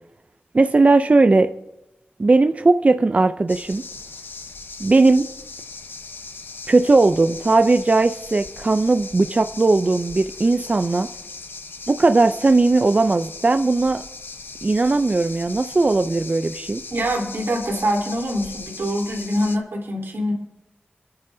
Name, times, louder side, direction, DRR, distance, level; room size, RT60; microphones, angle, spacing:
voice 1, 0.5-1.5 2.2-3.8 4.8-5.3 6.7-11.1 11.9-14.0 14.6-16.8, right 3 dB, 35° right, 9 dB, 0.4 m, -18 dB
sound 1, 3.5-19.6, left 4 dB, 70° left, 0.8 m, -38 dB
voice 2, 16.9-20.3, equal, 90° right, -2 dB, 3.5 m, -24 dB
27.5 x 9.6 x 2.7 m, 0.97 s
wide cardioid pair, 85°, 4 cm